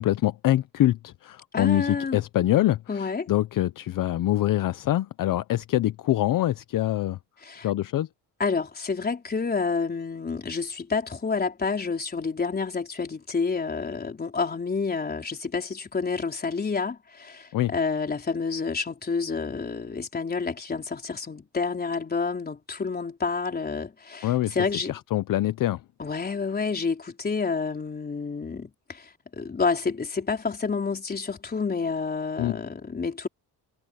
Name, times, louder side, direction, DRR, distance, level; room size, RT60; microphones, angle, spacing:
voice 1, 0.0-7.2 7.5-8.1 17.5-17.7 24.2-24.5 24.9-25.8 32.4-32.6, left 14 dB, 60° left, 0.7 m, -25 dB
voice 2, 1.5-2.2 2.9-3.3 7.4-7.7 8.4-24.9 26.0-33.3, left 4 dB, 25° left, 4.3 m, -29 dB
cardioid pair, 150°, 37 cm